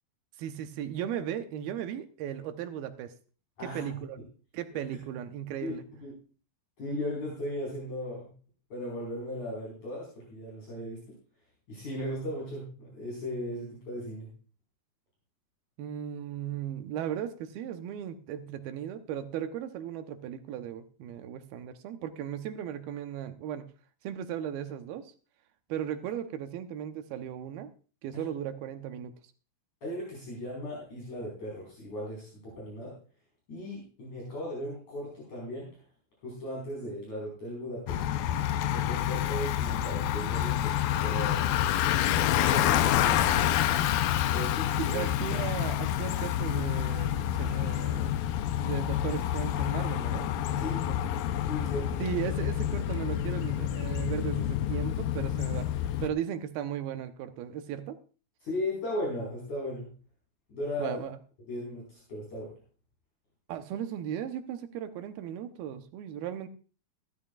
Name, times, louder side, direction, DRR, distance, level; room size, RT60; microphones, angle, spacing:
voice 1, 0.4-3.1 3.6-4.2 4.5-5.8 15.8-23.7 24.0-25.1 25.7-27.7 28.0-29.1 44.7-48.2 48.6-51.0 52.0-55.7 56.0-58.0 60.8-61.2 63.5-66.5, right 10 dB, 90° right, 8 dB, 2.8 m, -36 dB
voice 2, 6.8-8.3 8.7-11.2 11.7-14.3 28.1-28.2 29.8-33.0 33.5-35.8 36.2-38.0 38.7-40.7 41.0-41.5 42.3-43.5 44.3-45.1 50.6-52.0 58.4-59.9 60.5-61.0 61.5-62.5, left 1 dB, 50° left, -4 dB, 6.2 m, -37 dB
Bicycle, 37.9-56.1, left 11 dB, 80° left, 2.4 m, -28 dB
16.0 x 13.0 x 2.4 m, 0.37 s
omnidirectional pair, 4.2 m